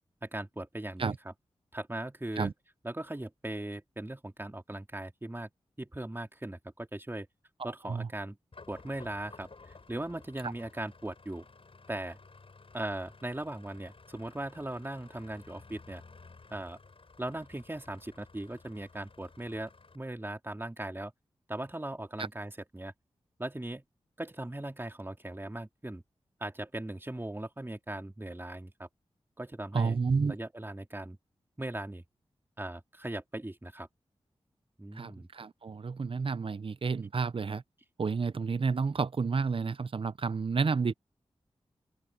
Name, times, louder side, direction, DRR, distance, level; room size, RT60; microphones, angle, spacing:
voice 1, 0.2-1.3 1.7-2.5 2.8-5.5 5.8-7.3 7.6-8.4 8.7-11.4 11.9-12.2 12.7-16.0 16.5-16.8 17.2-21.1 21.5-22.9 23.4-23.8 24.2-26.0 26.4-28.9 29.4-30.0 30.3-31.2 31.6-32.0 32.6-33.9 34.8-35.3, right 1 dB, 20° right, 3.3 m, -39 dB
sound 1, 8.5-19.9, left 4 dB, 60° left, 7.2 m, -55 dB
voice 2, 29.7-30.4 35.0-37.6 38.0-40.9, right 5 dB, 55° right, 0.8 m, -30 dB
open air
cardioid pair, 45°, 11 cm